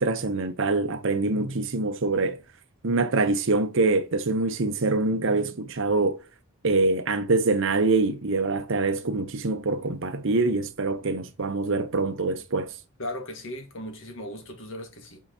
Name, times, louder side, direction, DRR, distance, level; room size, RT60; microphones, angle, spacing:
voice 1, 0.0-2.4 2.8-6.2 6.6-12.7, right 3 dB, 60° right, 0.8 m, -25 dB
voice 2, 13.0-15.2, left 1 dB, 60° left, 1.5 m, -37 dB
7.6 x 4.6 x 2.9 m
head